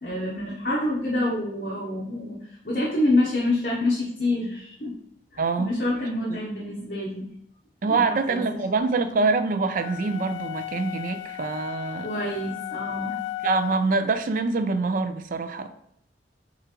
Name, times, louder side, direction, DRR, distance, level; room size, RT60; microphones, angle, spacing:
voice 1, 0.0-5.0 5.3-7.3 7.9-8.4 12.0-13.2, left 1 dB, 50° left, -4 dB, 0.8 m, -27 dB
voice 2, 5.4-5.7 6.3-6.4 7.8-12.1 13.4-15.7, right 3 dB, 50° right, 10 dB, 0.3 m, -25 dB
sound 1, 9.7-14.0, left 14 dB, 90° left, 0.4 m, -35 dB
6.6 x 2.4 x 2.9 m, 0.73 s
head